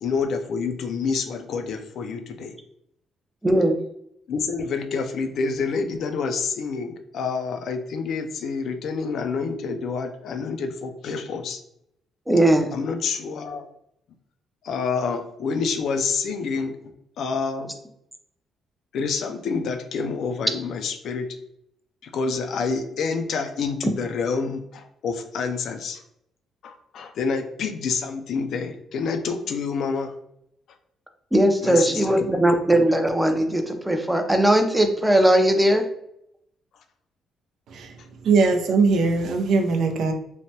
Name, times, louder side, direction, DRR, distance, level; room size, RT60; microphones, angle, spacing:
voice 1, 0.0-2.5 4.3-11.6 12.7-13.7 14.6-16.7 17.2-17.7 18.9-21.3 22.0-26.0 26.6-30.1 31.6-32.4 32.8-32.9, left 5 dB, 70° left, 0.4 m, -28 dB
voice 2, 3.4-3.8 12.3-12.8 31.3-35.9, right 1 dB, 5° right, 0.5 m, -19 dB
voice 3, 37.7-40.1, right 4 dB, 75° right, 0.5 m, -21 dB
3.2 x 2.1 x 2.7 m
cardioid pair, 90°, 0 cm